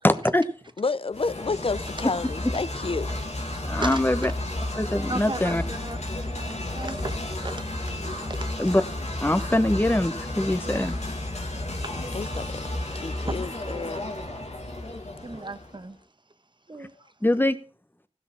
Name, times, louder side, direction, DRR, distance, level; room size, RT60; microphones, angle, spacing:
voice 1, 0.0-0.4 3.7-4.3 4.8-5.6 8.6-8.8 9.2-11.0 17.2-17.6, left 1 dB, 20° left, 1.0 m, -23 dB
voice 2, 0.8-3.5 12.1-12.4 12.9-14.1, left 4 dB, 55° left, 0.5 m, -30 dB
sound 1, 1.1-15.8, left 1 dB, 90° left, 1.8 m, -32 dB
voice 3, 3.8-4.3 5.1-8.5 10.8-10.9 11.8-11.9 12.2-12.4 13.5-13.7 15.2-16.0 16.7-17.1, right 2 dB, 45° right, 1.1 m, -37 dB
15.5 x 6.2 x 5.9 m
wide cardioid pair, 40°, 11 cm